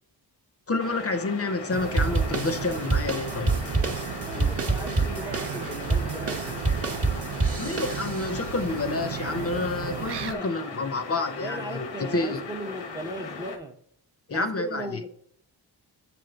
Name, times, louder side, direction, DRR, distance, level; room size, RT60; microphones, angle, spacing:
voice 1, 0.7-3.6 7.6-11.9 12.1-12.4 14.3-15.0, left 3 dB, 35° left, 0.6 m, -29 dB
sound 1, 0.8-13.6, left 4 dB, 90° left, 1.0 m, -39 dB
sound 2, 1.7-10.3, right 8 dB, 70° right, 0.6 m, -35 dB
sound 3, 2.0-8.5, right 3 dB, 35° right, 0.9 m, -28 dB
voice 2, 4.1-6.6 10.3-10.8 11.3-13.8 14.3-15.1, right 1 dB, 10° right, 0.5 m, -38 dB
7.4 x 3.3 x 3.8 m
wide cardioid pair, 110°, 42 cm